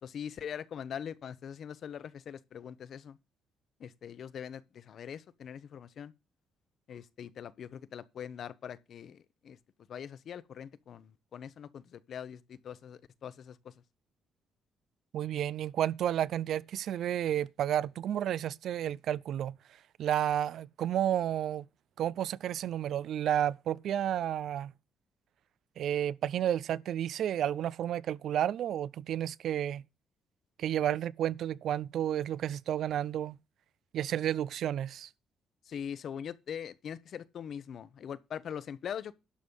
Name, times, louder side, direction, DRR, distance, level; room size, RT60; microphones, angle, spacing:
voice 1, 0.0-3.2 3.8-6.1 6.9-9.2 9.4-9.6 9.9-13.7 35.7-39.1, left 8 dB, 60° left, 0.9 m, -42 dB
voice 2, 15.1-19.6 20.0-21.7 22.0-24.7 25.8-29.8 30.6-33.4 33.9-35.1, right 10 dB, 70° right, 0.4 m, -31 dB
11.5 x 6.3 x 5.3 m
cardioid pair, 90°, 0 cm